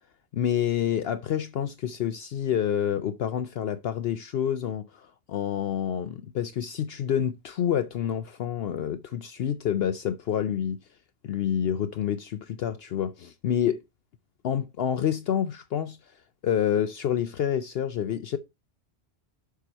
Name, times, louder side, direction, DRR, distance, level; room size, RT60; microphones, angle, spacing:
voice 1, 0.3-10.8 11.2-13.8 14.4-16.0 16.4-18.4, left 9 dB, 65° left, 0.7 m, -28 dB
6.9 x 5.8 x 4.4 m
omnidirectional pair, 1.3 m